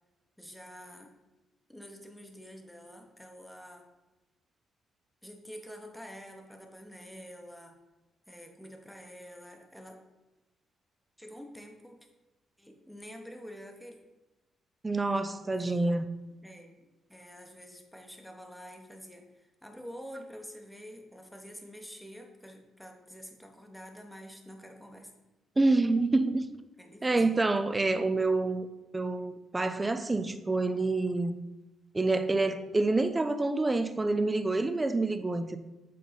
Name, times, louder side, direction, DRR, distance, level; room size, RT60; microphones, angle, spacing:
voice 1, 0.4-1.1 1.7-3.9 5.2-7.8 8.3-10.0 11.2-12.0 12.6-14.0 15.6-16.2 16.4-25.1 26.8-27.5, equal, ahead, 0.9 m, -48 dB
voice 2, 14.8-16.1 25.6-26.5 27.0-28.7 28.9-31.4 31.9-35.6, right 2 dB, 20° right, 0.5 m, -27 dB
7.6 x 3.7 x 4.0 m
cardioid pair, 90°, 0 cm